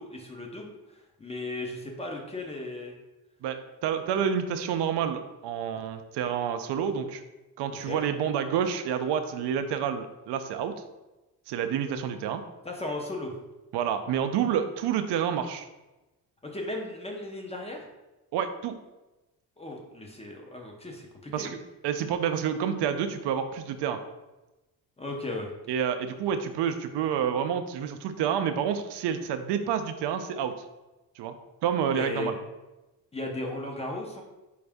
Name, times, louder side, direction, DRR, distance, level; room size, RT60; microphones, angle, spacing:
voice 1, 0.0-2.9 7.7-8.0 12.6-13.4 16.4-17.9 19.6-21.5 25.0-25.5 31.9-32.4 33.1-34.2, left 2 dB, 15° left, 1 dB, 0.5 m, -36 dB
voice 2, 3.4-7.2 7.6-10.7 11.5-12.4 13.7-15.7 18.3-18.8 21.3-21.6 21.8-24.0 25.7-30.5 31.2-31.3 31.6-32.3, right 8 dB, 80° right, 8 dB, 0.5 m, -29 dB
4.8 x 2.6 x 3.4 m, 1.0 s
cardioid pair, 130°, 40 cm